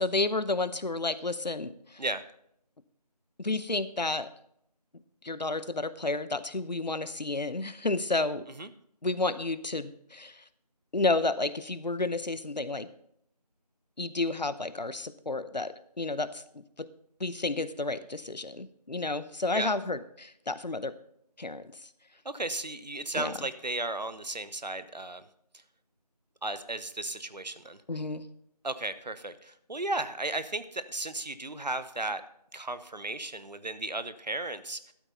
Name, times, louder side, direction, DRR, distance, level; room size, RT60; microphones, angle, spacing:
voice 1, 0.0-2.0 3.4-4.3 5.2-8.5 9.0-10.4 10.9-12.9 14.0-16.9 17.2-20.9 21.4-21.7 23.1-23.3 27.9-28.3, left 2 dB, 85° left, 15 dB, 0.8 m, -31 dB
voice 2, 22.2-25.2 26.4-27.8 28.6-32.2 32.5-34.9, right 2 dB, 80° right, 13 dB, 0.9 m, -35 dB
12.5 x 8.3 x 4.0 m, 0.71 s
figure-of-eight pair, 175°, 21 cm